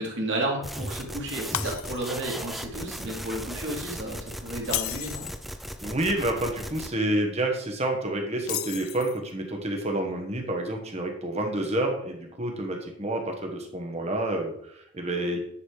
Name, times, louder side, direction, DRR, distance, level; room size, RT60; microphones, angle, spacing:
voice 1, 0.0-5.3, right 1 dB, 55° right, -2 dB, 2.4 m, -32 dB
sound 1, 0.6-6.9, equal, ahead, 0.4 m, -37 dB
Shatter, 1.5-2.3 2.7-3.0 4.6-5.4 8.4-9.3, left 14 dB, 70° left, 0.4 m, -33 dB
voice 2, 5.8-15.4, right 1 dB, 30° right, 3 dB, 1.2 m, -29 dB
9.8 x 4.1 x 4.8 m, 0.70 s
head